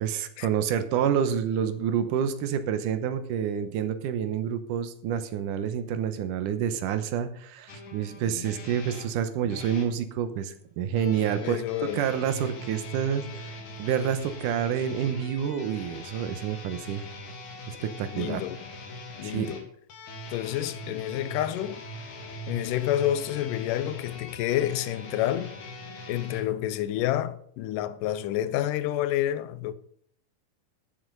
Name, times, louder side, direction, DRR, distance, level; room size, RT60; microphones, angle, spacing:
voice 1, 0.0-11.6 11.9-17.0 17.7-18.4 19.2-19.5, right 8 dB, 85° right, 2.5 m, -28 dB
sound 1, 7.7-9.9 11.0-26.4, left 1 dB, 70° left, 3.3 m, -42 dB
voice 2, 11.4-12.1 18.1-18.6 19.2-19.7 20.3-21.8 22.5-25.6 26.1-29.7, left 12 dB, 90° left, 2.3 m, -29 dB
12.5 x 7.1 x 5.5 m
omnidirectional pair, 3.7 m